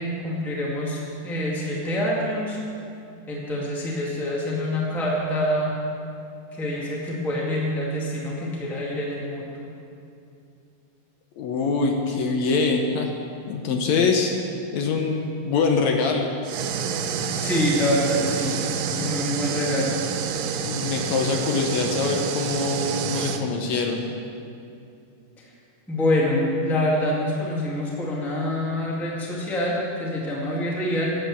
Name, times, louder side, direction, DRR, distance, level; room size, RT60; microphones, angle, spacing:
voice 1, 0.0-2.6 3.3-5.7 6.5-9.5 17.4-18.6 19.0-20.0 25.9-31.1, left 1 dB, ahead, -4 dB, 1.2 m, -26 dB
voice 2, 11.4-13.1 13.5-14.3 14.7-16.3 20.6-24.0, left 4 dB, 70° left, 2 dB, 2.0 m, -24 dB
sound 1, 16.4-23.4, right 6 dB, 75° right, 1.6 m, -28 dB
11.5 x 7.9 x 7.5 m, 2.6 s
omnidirectional pair, 3.5 m